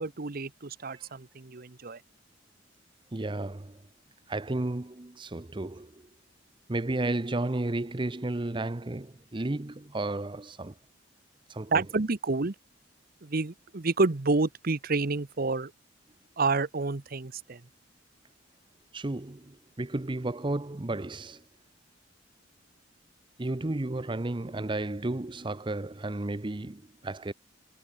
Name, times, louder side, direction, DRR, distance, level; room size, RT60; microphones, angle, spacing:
voice 1, 0.0-2.0 11.7-12.5 13.2-15.7 16.4-17.6, right 3 dB, 50° right, 0.9 m, -29 dB
voice 2, 3.1-3.8 4.3-6.1 6.7-10.8 11.5-11.8 18.9-21.4 23.4-27.3, right 2 dB, 25° right, 0.7 m, -33 dB
head